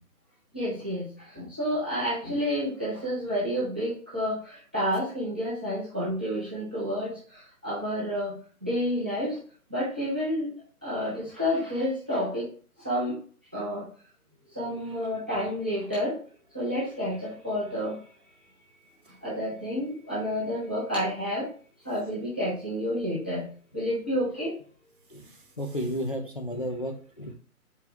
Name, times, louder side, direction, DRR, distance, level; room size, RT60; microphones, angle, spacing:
voice 1, 0.5-9.4 9.7-10.5 10.8-12.5 12.8-13.2 13.5-13.9 14.5-16.2 16.5-18.0 19.2-21.5 21.8-23.5 23.7-24.5, equal, 10° right, -9 dB, 0.6 m, -30 dB
voice 2, 25.1-27.3, equal, 40° left, 2 dB, 0.4 m, -33 dB
4.5 x 3.2 x 3.6 m, 0.42 s
figure-of-eight pair, 140°, 45 cm